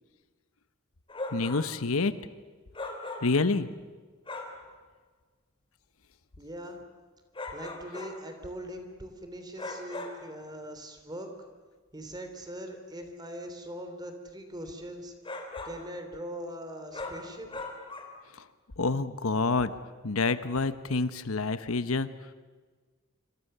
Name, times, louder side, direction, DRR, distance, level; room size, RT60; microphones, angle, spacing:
sound 1, 1.1-1.7 2.7-3.5 4.3-4.6 7.3-8.2 9.6-10.3 15.2-15.9 16.9-18.2, left 2 dB, 25° left, 3.3 m, -39 dB
voice 1, 1.3-2.1 3.2-3.7 18.8-19.7 20.0-22.1, left 3 dB, 85° left, 12 dB, 1.1 m, -27 dB
voice 2, 6.4-6.8 7.5-11.3 11.9-15.1 15.6-17.6, equal, 20° right, 6 dB, 3.3 m, -41 dB
27.0 x 25.5 x 6.9 m, 1.4 s
head